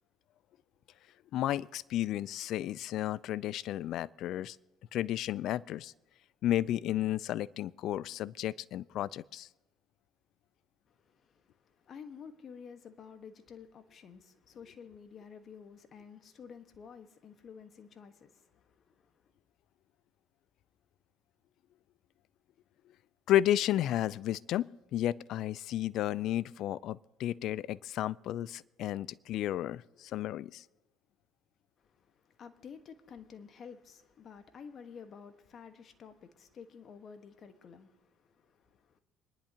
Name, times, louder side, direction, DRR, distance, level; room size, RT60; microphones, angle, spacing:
voice 1, 1.3-4.6 4.9-5.9 6.4-9.5 23.3-30.6, left 13 dB, 65° left, 0.4 m, -32 dB
voice 2, 11.0-11.3 11.7-18.9 31.8-31.9 32.4-39.0, left 6 dB, 50° left, 1.4 m, -51 dB
25.5 x 10.5 x 2.9 m
supercardioid pair, 80°, 0 cm